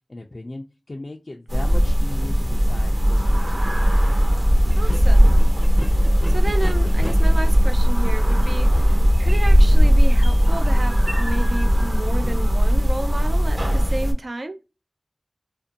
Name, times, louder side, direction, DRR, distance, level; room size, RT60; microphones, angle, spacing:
voice 1, 0.1-3.9, left 2 dB, 65° left, 0.3 m, -37 dB
sound 1, 1.5-14.1, equal, 50° right, 0.7 m, -17 dB
sound 2, 3.7-3.8 4.6-12.1, equal, 5° right, 0.4 m, -38 dB
voice 2, 4.8-5.3 6.3-14.6, right 2 dB, 75° right, 0.3 m, -32 dB
2.5 x 2.1 x 2.6 m
wide cardioid pair, 50°, 0 cm